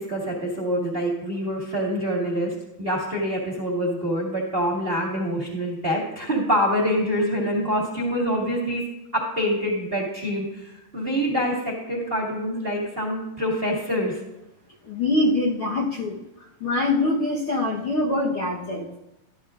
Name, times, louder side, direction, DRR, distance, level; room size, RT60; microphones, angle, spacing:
voice 1, 0.0-2.5 2.8-8.8 9.1-14.1, equal, 20° right, -3 dB, 1.6 m, -25 dB
voice 2, 14.8-16.2 16.6-19.0, left 2 dB, 65° left, -3 dB, 1.3 m, -24 dB
13.5 x 12.5 x 2.5 m, 0.91 s
omnidirectional pair, 4.2 m